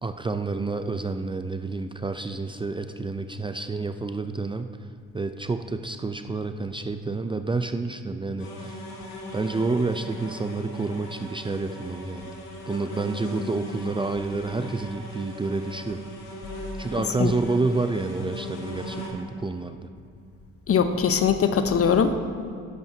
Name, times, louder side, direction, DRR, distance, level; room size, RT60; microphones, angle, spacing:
voice 1, 0.0-4.9 5.1-8.9 9.3-12.3 12.7-16.0 16.8-19.9, right 3 dB, 15° right, 8 dB, 0.5 m, -29 dB
sound 1, 8.4-19.1, equal, 85° left, 1.8 m, -39 dB
voice 2, 20.7-22.2, left 6 dB, 45° left, 9 dB, 0.9 m, -21 dB
12.5 x 10.5 x 2.8 m, 2.5 s
hypercardioid pair, 65°, 33 cm